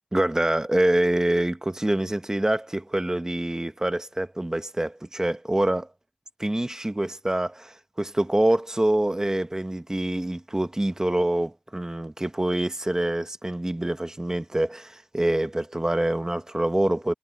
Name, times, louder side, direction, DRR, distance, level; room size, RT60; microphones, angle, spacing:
voice 1, 0.1-5.9 6.4-17.1, right 1 dB, 20° right, 1.1 m, -25 dB
wide cardioid pair, 65°, 3 cm